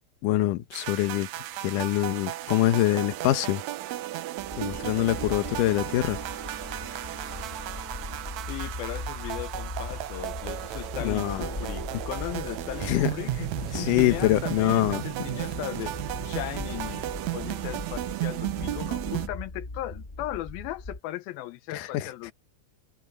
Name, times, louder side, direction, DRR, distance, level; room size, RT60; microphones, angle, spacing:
voice 1, 0.2-1.3 1.6-3.6 4.6-6.2 11.0-11.5 11.9-12.0 12.9-13.1 13.4-13.5 13.7-15.0 21.7-22.1, left 15 dB, 70° left, 2.4 m, -25 dB
sound 1, 0.7-19.3, right 15 dB, 80° right, 1.7 m, -34 dB
sound 2, 4.4-21.0, left 2 dB, 30° left, 0.8 m, -39 dB
Wind instrument woodwind instrument, 4.6-8.5, equal, 10° right, 0.6 m, -47 dB
voice 2, 8.5-17.1 17.3-22.3, left 15 dB, 90° left, 2.7 m, -37 dB
omnidirectional pair, 4.2 m